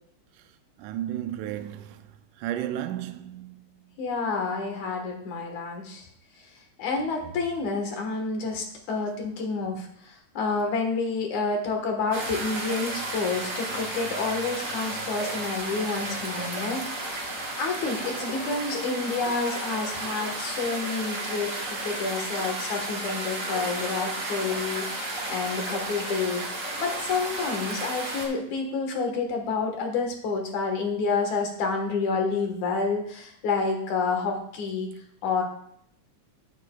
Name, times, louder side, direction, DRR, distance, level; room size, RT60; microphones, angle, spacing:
voice 1, 0.8-2.0 2.4-3.6 7.2-7.3, right 12 dB, 85° right, 2.1 m, -33 dB
voice 2, 4.0-6.0 6.8-17.1 17.6-26.5 26.8-34.9 35.2-35.4, left 4 dB, 70° left, 2.7 m, -29 dB
sound 1, 12.1-28.3, right 2 dB, 30° right, 2.4 m, -33 dB
13.0 x 9.0 x 2.3 m
omnidirectional pair, 3.6 m